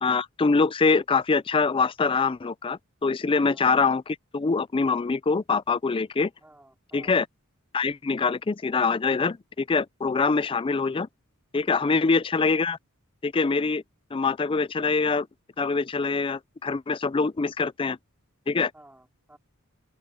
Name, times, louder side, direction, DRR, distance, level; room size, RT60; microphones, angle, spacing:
voice 1, 0.0-6.3 6.9-7.3 7.7-11.1 11.5-12.8 13.2-13.8 14.1-15.3 15.6-18.0 18.5-18.7, left 4 dB, 25° left, 0.4 m, -24 dB
voice 2, 3.3-3.7 6.4-7.2 10.5-10.7 11.8-12.0 18.7-19.4, right 1 dB, 10° right, 4.1 m, -53 dB
open air
head